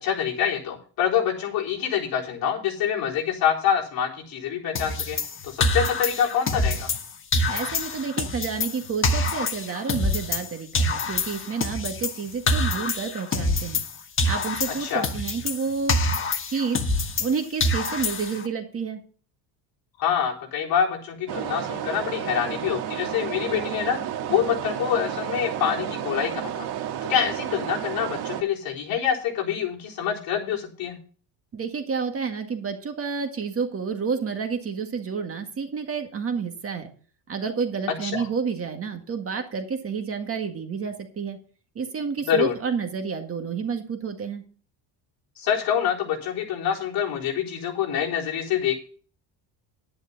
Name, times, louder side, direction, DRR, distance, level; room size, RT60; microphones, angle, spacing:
voice 1, 0.0-5.2 5.4-6.9 14.7-15.1 20.0-26.7 27.0-31.0 38.0-38.3 42.3-42.5 45.4-48.8, left 8 dB, 50° left, -2 dB, 4.2 m, -26 dB
sound 1, 4.8-7.1 7.3-10.5 10.7-13.9 14.2-17.3 17.6-18.5, left 2 dB, 30° left, 1.5 m, -26 dB
voice 2, 7.5-13.8 14.2-16.0 16.5-16.8 17.2-19.0 31.5-36.9 37.3-41.4 41.8-44.4, right 5 dB, 30° right, 5 dB, 1.8 m, -30 dB
sound 2, 21.3-28.4, right 10 dB, 60° right, 1.7 m, -31 dB
11.0 x 10.5 x 3.9 m, 0.42 s
cardioid pair, 145°, 44 cm